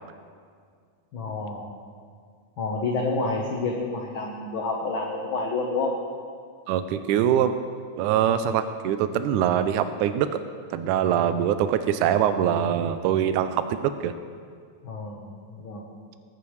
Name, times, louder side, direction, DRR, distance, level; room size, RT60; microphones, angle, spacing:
voice 1, 1.1-1.7 2.6-5.9 14.8-15.9, left 3 dB, 60° left, -1 dB, 1.4 m, -29 dB
voice 2, 6.7-7.5 8.0-10.4 10.7-14.1, right 9 dB, 80° right, 10 dB, 2.0 m, -23 dB
21.0 x 10.5 x 3.3 m, 2.1 s
omnidirectional pair, 3.6 m